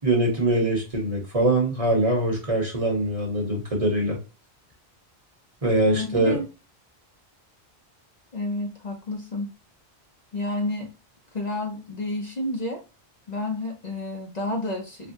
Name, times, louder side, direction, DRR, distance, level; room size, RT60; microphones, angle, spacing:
voice 1, 0.0-4.2 5.6-6.4, right 2 dB, 35° right, -1 dB, 1.1 m, -23 dB
voice 2, 5.8-6.5 8.3-9.5 10.3-10.9 11.3-12.8 13.3-15.1, left 2 dB, 40° left, -1 dB, 0.9 m, -30 dB
4.4 x 2.2 x 2.6 m, 0.30 s
omnidirectional pair, 1.1 m